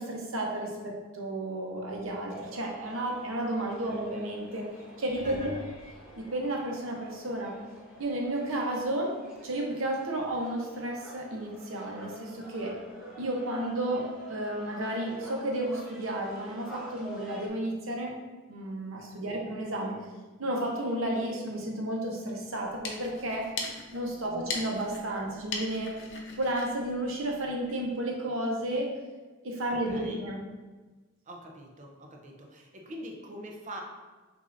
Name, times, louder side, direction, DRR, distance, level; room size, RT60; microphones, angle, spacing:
voice 1, 0.0-4.7 5.0-5.5 6.2-7.5 8.0-9.1 9.4-12.7 13.2-18.2 18.5-20.0 20.4-23.5 23.9-25.9 26.4-28.9 29.4-30.4, right 1 dB, 75° right, -1 dB, 0.9 m, -32 dB
sound 1, 2.3-17.5, right 1 dB, 5° right, 0.8 m, -48 dB
sound 2, 5.0-7.3 8.0-8.4 8.8-8.9 13.3-13.4, left 2 dB, 45° left, 1.4 m, -48 dB
sound 3, 22.5-27.9, left 4 dB, 60° left, 0.6 m, -40 dB
voice 2, 24.2-24.5 29.7-30.2 31.3-33.8, equal, 40° right, 1 dB, 0.6 m, -44 dB
6.3 x 2.6 x 2.6 m, 1.3 s
head